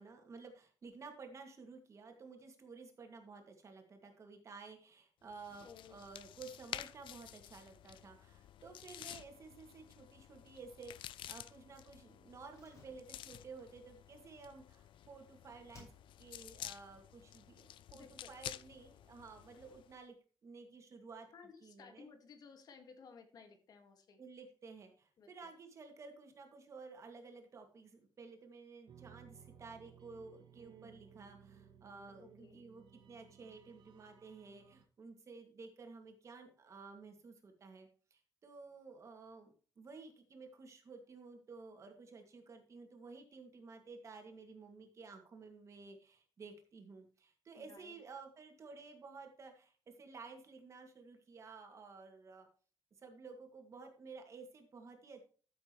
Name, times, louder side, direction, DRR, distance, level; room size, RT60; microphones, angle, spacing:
voice 1, 0.0-15.9 16.2-20.2 20.4-21.3 21.6-22.1 24.2-52.5 53.0-55.2, right 4 dB, 35° right, 4 dB, 2.2 m, -53 dB
sound 1, 5.3-20.0, left 12 dB, 80° left, 0.5 m, -51 dB
voice 2, 5.6-6.0 17.9-18.3 21.3-24.2 25.2-25.3 32.2-32.6 47.6-48.0, left 5 dB, 50° left, 6 dB, 1.9 m, -57 dB
Slam, 12.5-15.2 15.7-16.5 16.7-16.8, left 2 dB, 35° left, 5.0 m, -64 dB
sound 2, 28.9-34.8, right 8 dB, 60° right, 1.3 m, -60 dB
14.0 x 7.6 x 3.1 m, 0.38 s
wide cardioid pair, 175°, 8 cm